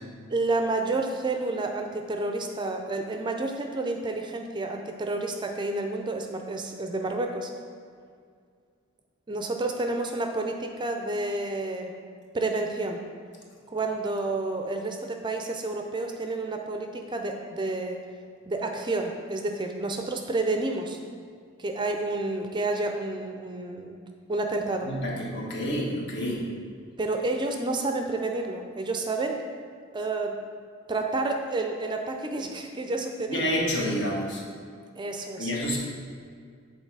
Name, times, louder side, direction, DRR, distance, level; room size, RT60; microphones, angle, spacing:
voice 1, 0.3-7.5 9.3-11.9 12.3-13.0 13.7-18.0 18.5-21.0 21.6-24.0 24.3-24.9 27.0-29.4 29.9-30.4 30.9-33.5 35.0-35.5, right 2 dB, 20° right, 3 dB, 0.4 m, -30 dB
voice 2, 24.8-26.4 33.3-34.4 35.4-35.8, equal, 60° left, -3 dB, 1.3 m, -28 dB
8.0 x 3.8 x 4.7 m, 2.1 s
head